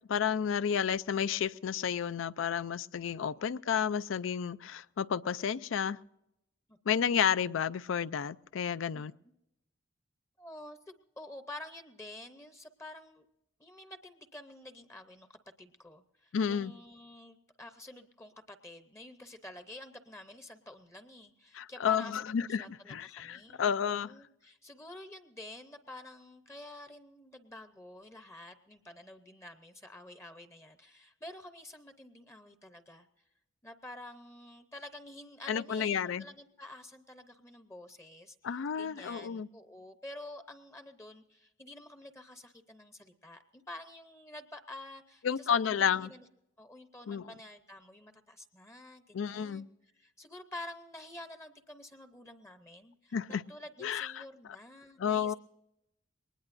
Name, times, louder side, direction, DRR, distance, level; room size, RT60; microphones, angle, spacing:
voice 1, 0.1-6.0 6.9-9.1 16.3-16.7 21.5-24.1 35.5-36.2 38.4-39.5 45.2-46.1 47.1-47.2 49.1-49.7 53.1-53.4 53.8-54.1 55.0-55.3, left 7 dB, 80° left, 17 dB, 0.4 m, -31 dB
voice 2, 8.9-9.3 10.4-13.2 13.6-33.1 33.6-46.3 46.6-55.3, left 1 dB, 15° left, 9 dB, 0.7 m, -49 dB
21.5 x 19.5 x 2.6 m, 0.86 s
head